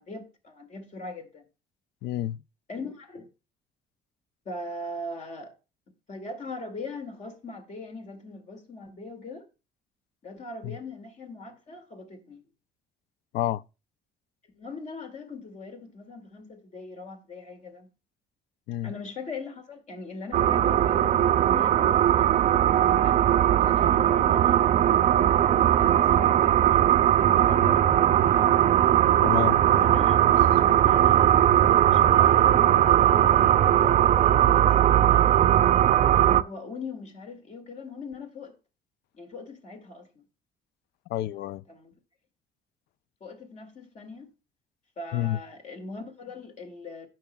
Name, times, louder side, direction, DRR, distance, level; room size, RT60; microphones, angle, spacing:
voice 1, 0.0-1.5 2.7-3.3 4.5-5.5 6.1-9.5 10.2-12.4 14.5-17.9 18.8-23.3 23.6-24.6 25.2-28.6 29.7-31.4 31.9-35.5 36.1-38.6 39.1-40.2 41.7-41.9 43.2-44.3 45.0-47.1, left 3 dB, 45° left, 2.2 m, -40 dB
voice 2, 2.0-2.4 10.6-10.8 13.3-13.6 18.7-18.9 29.2-29.6 41.1-41.6 45.1-45.4, left 13 dB, 75° left, 0.4 m, -28 dB
sound 1, 20.3-36.4, right 11 dB, 45° right, 0.5 m, -20 dB
16.0 x 5.8 x 2.2 m
cardioid pair, 110°, 17 cm